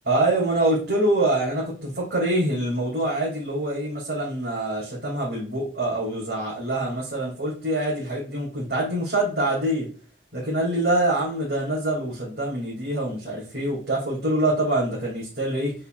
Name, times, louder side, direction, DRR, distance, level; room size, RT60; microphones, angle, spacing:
voice 1, 0.0-9.9 10.3-15.7, right 1 dB, 70° right, -7 dB, 3.0 m, -25 dB
6.9 x 5.3 x 2.6 m, 0.40 s
head